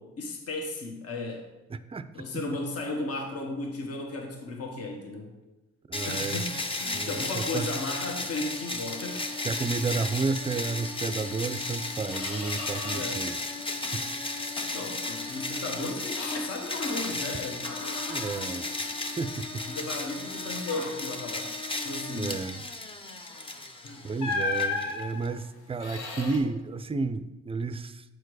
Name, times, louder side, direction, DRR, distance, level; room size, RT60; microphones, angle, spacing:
voice 1, 0.0-1.5 2.1-5.3 6.0-9.3 12.9-13.2 14.7-17.8 19.6-22.4 23.8-24.0, left 2 dB, 50° left, 1 dB, 1.3 m, -35 dB
voice 2, 1.7-2.1 5.9-6.4 6.9-7.7 9.4-13.4 13.9-14.0 15.2-15.5 18.1-18.7 19.2-19.6 22.1-22.6 24.0-28.0, right 4 dB, 20° right, 12 dB, 0.4 m, -32 dB
sound 1, 5.9-25.3, left 2 dB, 20° left, 0.7 m, -34 dB
Squeak, 11.3-11.4 11.8-13.2 13.5-14.1 14.6-17.4 17.6-19.5 19.9-20.1 20.6-21.2 23.3-23.5 24.2-26.4, left 3 dB, 90° left, 1.2 m, -37 dB
7.9 x 4.6 x 4.7 m, 1.1 s
cardioid pair, 90°, 30 cm